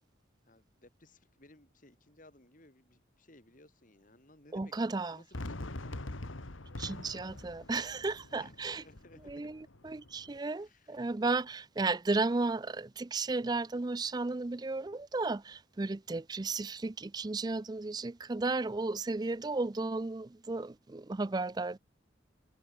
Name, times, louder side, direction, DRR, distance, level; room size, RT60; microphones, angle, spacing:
voice 1, 0.4-6.0 8.3-9.5 10.6-11.0, left 1 dB, 40° left, 2.9 m, -60 dB
voice 2, 4.5-5.2 6.8-8.8 9.3-9.6 9.8-21.8, right 3 dB, 20° right, 0.4 m, -34 dB
Fireworks, 5.3-10.4, left 2 dB, 90° left, 2.0 m, -44 dB
head